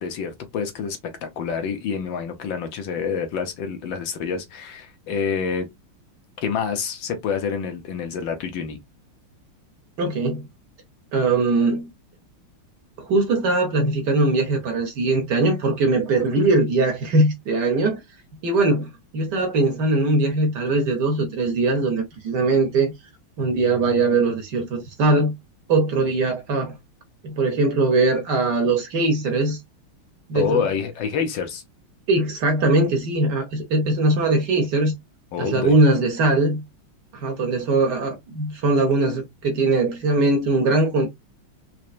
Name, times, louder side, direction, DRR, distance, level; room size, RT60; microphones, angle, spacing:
voice 1, 0.0-5.7 6.4-8.8 30.3-31.6 35.3-35.7, left 6 dB, 65° left, 1.4 m, -27 dB
voice 2, 10.0-10.5 11.1-11.9 13.0-18.0 18.4-22.9 23.4-25.3 25.7-26.7 27.2-29.6 30.3-30.6 32.1-34.9 35.4-36.6 37.1-41.1, right 2 dB, 60° right, 1.3 m, -21 dB
4.3 x 3.2 x 2.4 m
omnidirectional pair, 2.4 m